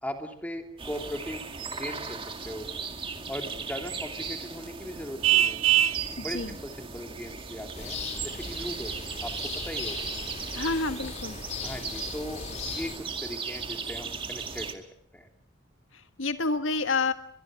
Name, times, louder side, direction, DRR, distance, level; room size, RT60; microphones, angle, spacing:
voice 1, 0.0-2.7 3.3-5.6 6.2-10.1 11.6-14.8 15.1-15.3, equal, 5° left, 4 dB, 3.0 m, -39 dB
sound 1, 0.8-14.7, right 5 dB, 25° right, 2.2 m, -37 dB
Vehicle horn car horn honking, 5.2-6.1, right 11 dB, 90° right, 1.0 m, -21 dB
voice 2, 6.2-6.5 10.5-11.4 15.9-17.1, left 3 dB, 70° left, 9 dB, 1.7 m, -29 dB
sound 2, 7.7-13.0, left 4 dB, 35° left, 2.9 m, -38 dB
23.5 x 22.5 x 7.7 m, 0.63 s
head